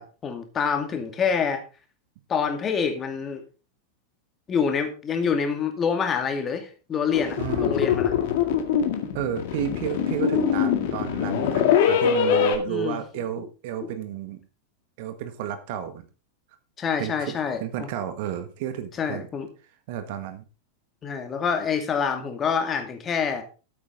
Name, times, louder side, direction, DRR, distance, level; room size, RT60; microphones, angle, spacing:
voice 1, 0.0-1.6 2.3-3.4 4.5-8.1 12.7-13.0 13.8-13.9 16.8-17.9 19.0-19.5 21.0-23.4, left 6 dB, 25° left, 5 dB, 2.3 m, -26 dB
sound 1, 7.1-12.6, left 8 dB, 50° left, 2.0 m, -23 dB
voice 2, 7.4-7.8 9.1-14.4 15.0-16.0 17.0-19.3 19.9-20.4, right 9 dB, 50° right, 9 dB, 1.6 m, -32 dB
13.0 x 8.6 x 3.8 m, 0.33 s
figure-of-eight pair, 90°, 0 cm